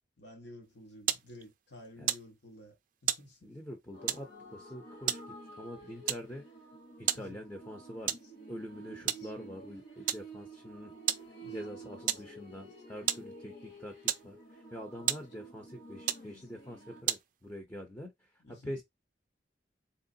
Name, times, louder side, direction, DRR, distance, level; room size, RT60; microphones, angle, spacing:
voice 1, 0.2-2.7 3.0-3.5 7.1-7.4 9.0-9.1 11.4-11.5 18.4-18.8, left 1 dB, 80° left, 1.4 m, -52 dB
sound 1, 0.6-17.6, right 11 dB, 45° right, 0.3 m, -38 dB
voice 2, 3.4-6.4 7.0-8.2 8.5-18.8, equal, 15° left, 0.6 m, -45 dB
sound 2, 3.9-17.0, right 2 dB, 65° left, 1.4 m, -50 dB
3.8 x 2.9 x 2.7 m
head